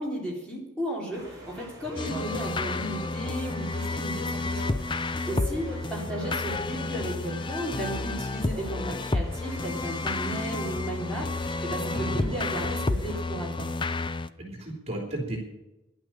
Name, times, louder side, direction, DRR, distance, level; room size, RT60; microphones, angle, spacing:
voice 1, 0.0-4.7 5.0-13.7, right 1 dB, 5° left, -4 dB, 3.6 m, -35 dB
sound 1, 1.1-13.2, equal, 15° right, 5.2 m, -43 dB
sound 2, 2.0-14.3, left 3 dB, 25° left, 0.5 m, -31 dB
voice 2, 11.9-12.4 14.4-15.4, right 1 dB, 35° right, 0 dB, 3.2 m, -34 dB
11.0 x 9.0 x 8.8 m, 0.96 s
head